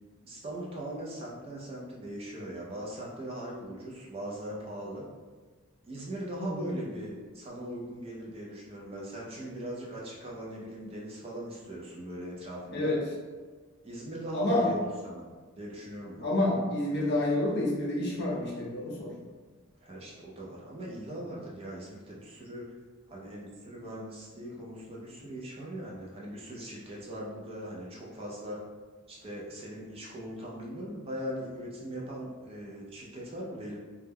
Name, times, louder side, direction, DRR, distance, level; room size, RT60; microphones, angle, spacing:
voice 1, 0.2-5.0 5.8-13.0 13.8-15.3 15.6-16.3 19.8-22.7 23.1-28.6 29.1-33.8, right 1 dB, 25° right, -4 dB, 0.4 m, -40 dB
voice 2, 6.4-6.8 12.7-13.0 14.3-14.7 16.2-19.1, left 1 dB, 50° left, -3 dB, 0.5 m, -28 dB
2.2 x 2.1 x 3.3 m, 1.4 s
head